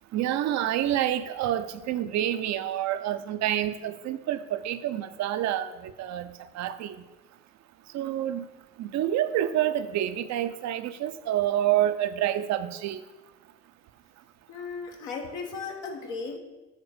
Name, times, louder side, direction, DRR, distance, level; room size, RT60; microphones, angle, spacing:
voice 1, 0.1-6.3 6.5-7.0 7.9-8.4 8.8-13.0, right 12 dB, 45° right, 11 dB, 0.6 m, -28 dB
voice 2, 14.5-16.4, left 4 dB, 70° left, 1 dB, 1.4 m, -36 dB
7.3 x 3.8 x 6.4 m, 1.1 s
figure-of-eight pair, 50°, 38 cm